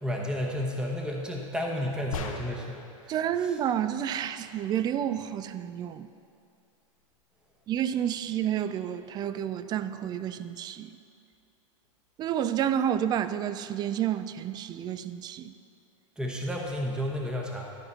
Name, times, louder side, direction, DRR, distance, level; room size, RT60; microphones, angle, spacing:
voice 1, 0.0-3.6 16.2-17.7, equal, 5° right, 0 dB, 0.9 m, -32 dB
sound 1, 2.1-2.8, left 5 dB, 85° left, 0.9 m, -36 dB
voice 2, 3.1-6.1 7.7-11.0 12.2-15.5, right 10 dB, 25° right, 12 dB, 0.3 m, -30 dB
12.5 x 4.2 x 5.4 m, 2.5 s
hypercardioid pair, 115°, 17 cm